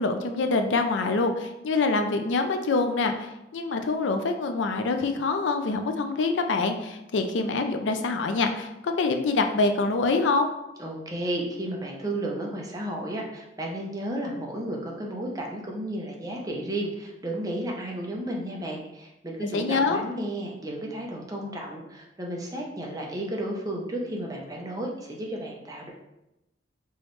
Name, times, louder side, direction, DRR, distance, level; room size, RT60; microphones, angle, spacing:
voice 1, 0.0-10.5 19.5-20.1, left 3 dB, 85° left, 6 dB, 0.4 m, -25 dB
voice 2, 10.8-25.9, right 1 dB, 20° right, -1 dB, 0.6 m, -33 dB
4.7 x 3.1 x 3.1 m, 0.91 s
head